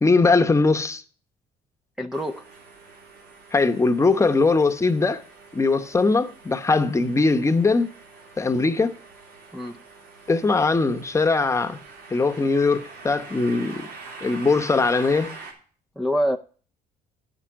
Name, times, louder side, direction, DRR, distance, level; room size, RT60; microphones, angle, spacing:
voice 1, 0.0-1.0 3.5-5.2 5.5-7.9 8.4-8.9 10.3-11.8 12.1-13.9 14.2-15.4, left 3 dB, 15° left, 0.9 m, -20 dB
voice 2, 2.0-2.4 9.5-9.8 16.0-16.4, equal, ahead, 0.5 m, -25 dB
sound 1, 2.1-15.5, right 4 dB, 80° right, 3.4 m, -45 dB
10.5 x 5.8 x 6.2 m
cardioid pair, 110°, 17 cm